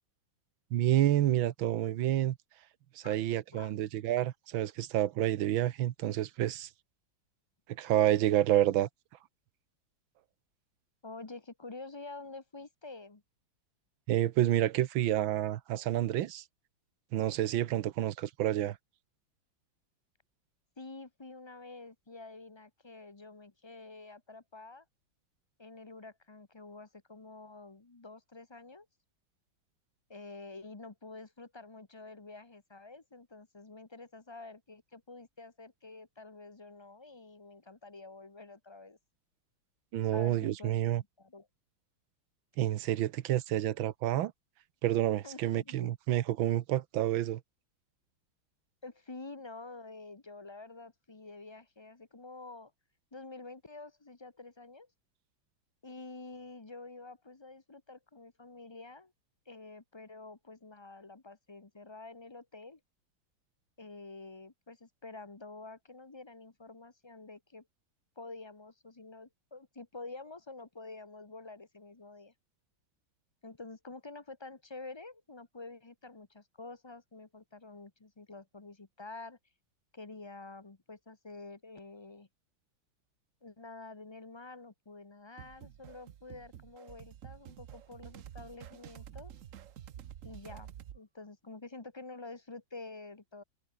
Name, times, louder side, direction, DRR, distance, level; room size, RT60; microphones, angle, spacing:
voice 1, 0.7-2.4 3.0-6.7 7.8-8.9 14.1-16.4 17.1-18.8 39.9-41.0 42.6-44.3 44.8-47.4, right 13 dB, 80° right, 1.6 m, -29 dB
voice 2, 11.0-13.2 20.8-24.8 25.6-28.9 30.1-39.0 40.1-41.5 45.2-45.9 48.8-52.7 53.1-54.9 55.8-59.1 59.5-62.8 63.8-67.7 68.2-72.3 73.4-79.4 79.9-82.3 83.4-89.3 90.2-90.7 90.9-93.4, left 3 dB, 20° left, 0.8 m, -48 dB
sound 1, 85.4-91.0, right 10 dB, 60° right, 0.9 m, -49 dB
omnidirectional pair, 2.1 m